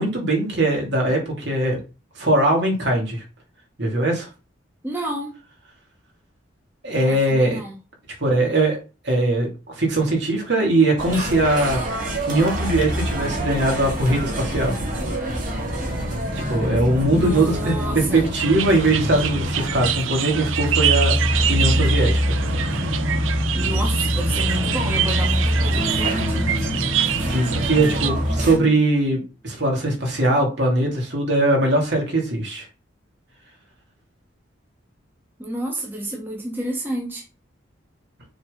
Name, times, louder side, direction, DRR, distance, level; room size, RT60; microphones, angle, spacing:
voice 1, 0.0-1.8 2.2-3.2 3.8-4.3 6.8-7.6 8.2-8.8 9.0-11.8 12.3-14.7 16.5-17.7 18.1-22.4 27.3-32.7, right 2 dB, 60° right, 2.6 m, -21 dB
voice 2, 4.8-5.3 7.0-7.8 17.1-18.3 23.5-26.5 35.4-37.2, right 1 dB, 10° right, 1.3 m, -30 dB
sound 1, 11.0-28.6, equal, 45° right, 2.3 m, -25 dB
sound 2, 18.4-28.1, right 9 dB, 90° right, 0.6 m, -25 dB
sound 3, 25.8-28.9, equal, 10° left, 0.4 m, -33 dB
6.8 x 3.9 x 3.8 m
head